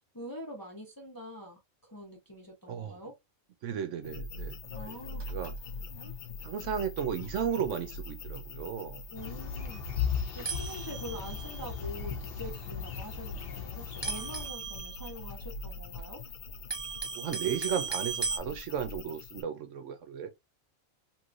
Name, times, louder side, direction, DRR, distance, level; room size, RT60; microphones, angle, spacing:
voice 1, 0.1-3.1 4.7-5.3 9.1-9.9 10.3-16.2, equal, 20° left, 0.6 m, -44 dB
voice 2, 2.7-3.0 3.6-4.6 4.8-5.0 5.3-5.5 6.4-9.0 17.0-20.3, right 8 dB, 70° right, 0.9 m, -34 dB
sound 1, 4.0-19.4, left 2 dB, 70° left, 0.4 m, -43 dB
sound 2, 4.6-5.6 5.9-6.1 6.7-6.9 7.2-7.3 7.7-7.8 8.1-8.3 9.1-9.2 9.9-10.0 10.4-11.8 12.6-13.1 13.3-13.5 14.0-16.0 16.4-18.4, right 4 dB, 35° right, 0.4 m, -38 dB
sound 3, 9.2-14.5, left 7 dB, 50° left, 0.9 m, -37 dB
3.1 x 2.9 x 2.5 m
omnidirectional pair, 1.4 m